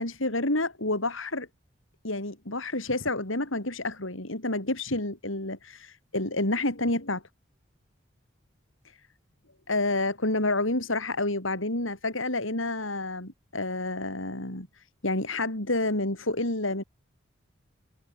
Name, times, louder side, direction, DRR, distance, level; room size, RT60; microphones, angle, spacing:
voice 1, 0.0-1.5 2.0-7.2 8.9-9.0 9.7-16.8, left 2 dB, 80° left, 5.9 m, -29 dB
head